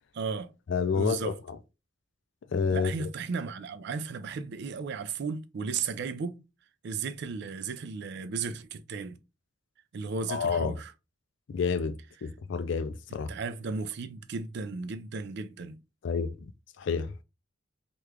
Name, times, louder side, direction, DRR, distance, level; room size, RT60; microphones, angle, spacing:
voice 1, 0.1-0.5 0.9-1.4 2.7-6.4 6.8-9.2 9.9-10.9 13.1-15.8, right 4 dB, 60° right, 0.4 m, -35 dB
voice 2, 0.7-1.3 2.5-3.1 10.3-10.7 11.5-13.3 16.0-16.3 16.8-17.1, left 5 dB, 65° left, 0.4 m, -29 dB
3.0 x 2.3 x 3.3 m
head